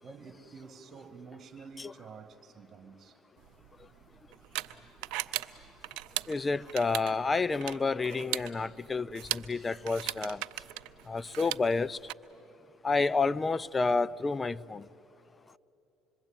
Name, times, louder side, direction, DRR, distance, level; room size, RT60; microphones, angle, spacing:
voice 1, 0.0-3.2 4.6-4.7, right 5 dB, 40° right, 2.0 m, -49 dB
sound 1, 3.4-12.1, right 17 dB, 75° right, 0.6 m, -39 dB
voice 2, 6.3-10.4 11.1-12.0 12.8-14.8, left 4 dB, 25° left, 0.5 m, -29 dB
26.0 x 22.5 x 9.0 m
hypercardioid pair, 70°, 0 cm